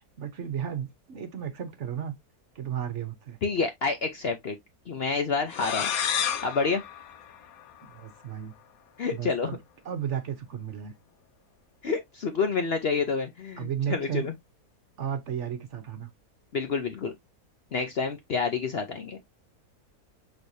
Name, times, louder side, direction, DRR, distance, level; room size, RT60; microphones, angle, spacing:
voice 1, 0.2-2.1 2.5-3.4 7.9-8.5 9.1-9.6 9.8-10.9 13.6-14.3 15.0-16.1, right 9 dB, 55° right, 1.0 m, -33 dB
voice 2, 3.4-4.6 4.9-5.9 6.4-6.8 9.0-9.6 11.8-14.3 16.5-17.1 17.7-19.2, left 4 dB, 55° left, 0.7 m, -28 dB
sound 1, 5.5-8.1, left 8 dB, 70° left, 1.2 m, -31 dB
6.2 x 3.2 x 2.6 m
omnidirectional pair, 1.6 m